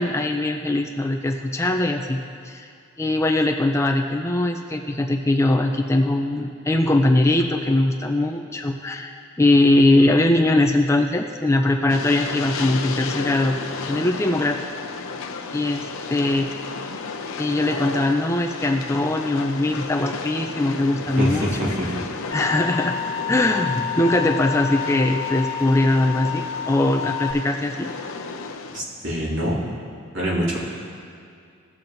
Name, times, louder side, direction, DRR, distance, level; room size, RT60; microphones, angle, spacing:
voice 1, 0.0-2.2 2.4-2.7 3.0-13.6 13.9-14.6 15.5-16.5 17.4-21.7 22.3-23.0 23.3-27.9, left 1 dB, 15° left, 2 dB, 0.4 m, -21 dB
Train, 11.9-28.8, left 4 dB, 85° left, 0.6 m, -33 dB
voice 2, 21.2-21.9 28.7-29.6 30.1-30.6, equal, 70° right, -5 dB, 2.3 m, -25 dB
sound 1, 22.3-27.3, left 10 dB, 50° left, 0.8 m, -30 dB
18.0 x 7.2 x 2.6 m, 2.4 s
head